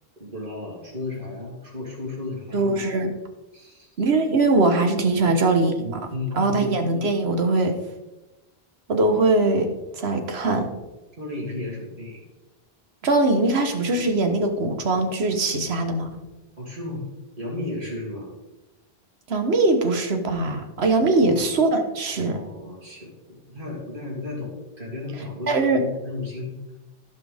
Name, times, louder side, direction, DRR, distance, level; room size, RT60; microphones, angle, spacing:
voice 1, 0.2-2.9 3.5-3.9 5.1-5.3 6.1-6.7 11.1-12.2 16.6-17.0 17.4-18.3 21.1-21.3 22.2-26.5, left 2 dB, 55° right, -3 dB, 3.3 m, -34 dB
voice 2, 2.5-3.1 4.0-6.0 6.3-7.8 8.9-10.7 13.0-16.2 19.3-22.4 25.5-25.8, right 2 dB, 85° right, 5 dB, 1.5 m, -21 dB
15.5 x 5.7 x 3.6 m, 1.0 s
omnidirectional pair, 1.0 m